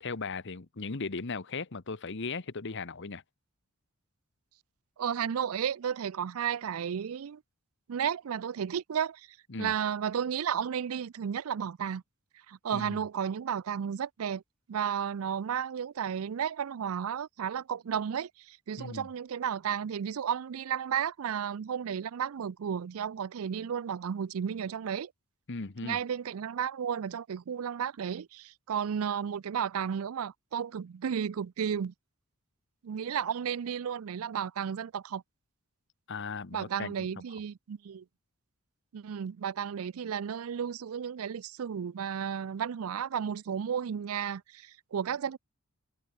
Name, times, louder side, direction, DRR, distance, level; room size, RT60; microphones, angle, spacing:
voice 1, 0.0-3.2 9.5-9.7 12.7-13.0 18.8-19.1 25.5-26.0 36.1-37.1, left 4 dB, 55° left, 1.1 m, -37 dB
voice 2, 5.0-7.4 7.9-9.3 9.6-12.0 12.5-14.4 14.7-25.1 25.8-31.9 32.8-35.2 36.5-38.0 38.9-45.4, right 8 dB, 75° right, 0.4 m, -33 dB
head